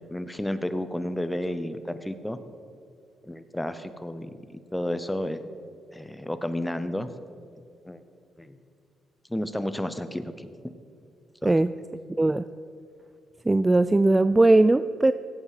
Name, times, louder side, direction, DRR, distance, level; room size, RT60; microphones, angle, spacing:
voice 1, 0.1-2.4 3.2-5.4 5.9-7.1 7.8-8.0 8.4-8.6 9.3-10.5 11.4-11.5, left 1 dB, 5° left, 11 dB, 0.8 m, -31 dB
voice 2, 13.5-15.1, right 2 dB, 15° right, 13 dB, 0.3 m, -19 dB
16.0 x 8.1 x 5.0 m, 2.4 s
cardioid pair, 90°, 0 cm